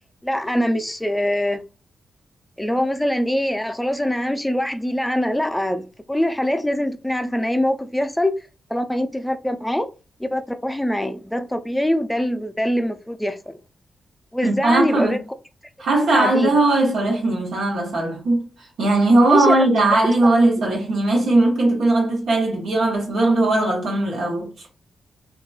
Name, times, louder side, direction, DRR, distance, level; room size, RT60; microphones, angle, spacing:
voice 1, 0.2-1.6 2.6-8.3 8.7-9.9 10.2-13.6 14.3-15.2 15.9-16.5 19.3-19.5 20.2-20.3, left 1 dB, 10° left, 0.5 m, -23 dB
voice 2, 14.4-15.2 15.8-18.5 18.8-24.5, right 2 dB, 80° right, 1.2 m, -19 dB
2.9 x 2.8 x 2.3 m
supercardioid pair, 45°, 0 cm